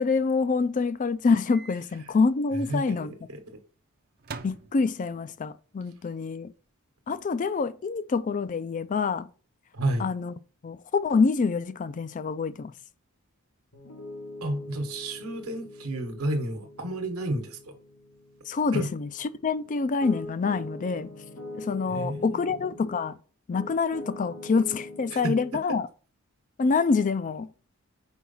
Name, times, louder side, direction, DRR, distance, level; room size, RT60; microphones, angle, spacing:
voice 1, 0.0-3.1 4.4-6.5 7.1-9.3 10.0-10.3 10.6-12.7 18.5-21.1 21.5-23.2 23.5-25.9 26.6-27.5, left 4 dB, 35° left, 0.4 m, -26 dB
Microwave oven, 1.5-1.8 2.2-2.3 4.2-5.2, right 5 dB, 45° right, 0.5 m, -42 dB
voice 2, 2.5-3.6 9.7-10.1 14.4-17.8 18.7-18.9 21.9-22.6 25.1-25.3 25.7-25.8, right 1 dB, 80° right, 1.1 m, -31 dB
Piano, 13.7-23.1 23.5-25.5, left 2 dB, 80° left, 1.7 m, -43 dB
4.7 x 4.5 x 5.4 m
head